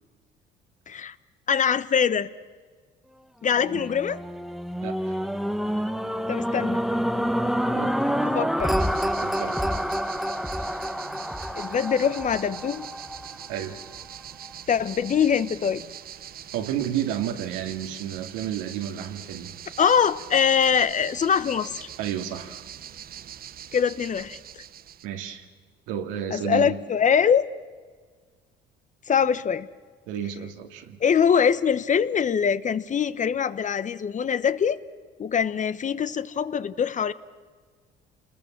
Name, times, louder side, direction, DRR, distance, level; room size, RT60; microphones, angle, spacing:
voice 1, 1.5-2.3 3.4-4.2 6.3-6.8 8.2-8.8 11.5-12.9 14.7-15.8 19.8-21.9 23.7-24.4 26.3-27.5 29.1-29.7 31.0-34.8 35.2-37.1, left 7 dB, 40° left, 1.1 m, -23 dB
sound 1, 3.6-13.8 14.4-14.5, equal, ahead, 1.1 m, -28 dB
voice 2, 4.8-5.2 7.7-8.1 9.2-9.6 13.5-13.8 16.5-19.5 22.0-22.7 25.0-25.5 25.9-26.8 30.1-31.0, right 10 dB, 90° right, 2.2 m, -31 dB
sound 2, 8.8-25.1, right 10 dB, 50° right, 0.8 m, -43 dB
28.5 x 21.0 x 7.4 m
supercardioid pair, 85°, 20 cm